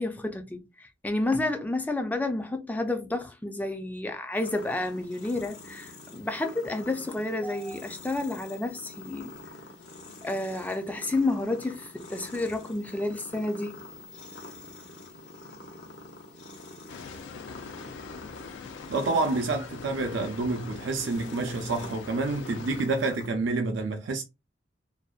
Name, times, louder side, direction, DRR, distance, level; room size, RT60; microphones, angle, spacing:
voice 1, 0.0-9.3 10.2-13.8, left 2 dB, 10° left, 0.3 m, -30 dB
sound 1, 4.3-23.3, left 2 dB, 75° left, 0.7 m, -46 dB
sound 2, 16.9-22.9, left 5 dB, 90° left, 0.3 m, -43 dB
voice 2, 18.9-24.2, right 3 dB, 85° right, 0.4 m, -28 dB
2.6 x 2.1 x 2.3 m
head